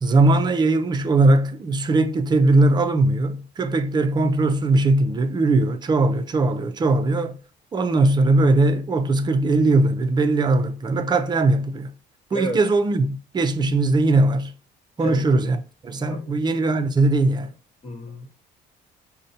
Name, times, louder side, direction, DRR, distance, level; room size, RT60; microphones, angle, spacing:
voice 1, 0.0-7.4 7.7-11.9 12.3-14.5 15.0-17.5, right 2 dB, 25° right, 0.5 m, -20 dB
voice 2, 16.1-16.4 17.8-18.3, equal, 35° left, 0.9 m, -31 dB
5.2 x 2.2 x 2.6 m
cardioid pair, 110°, 17 cm